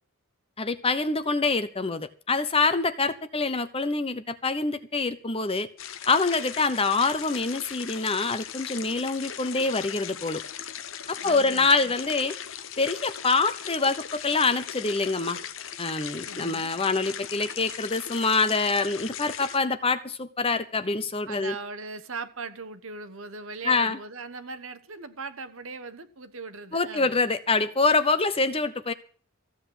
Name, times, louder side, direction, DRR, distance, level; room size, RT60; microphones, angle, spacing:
voice 1, 0.6-5.7 6.1-10.4 11.1-12.4 12.8-15.4 15.8-21.5 23.6-24.0 26.7-28.9, left 3 dB, 25° left, 1.0 m, -25 dB
sound 1, 5.8-19.6, left 9 dB, 60° left, 1.0 m, -39 dB
voice 2, 11.2-11.9 16.2-16.7 21.3-27.2, right 4 dB, 65° right, 1.3 m, -39 dB
15.5 x 8.2 x 7.9 m
head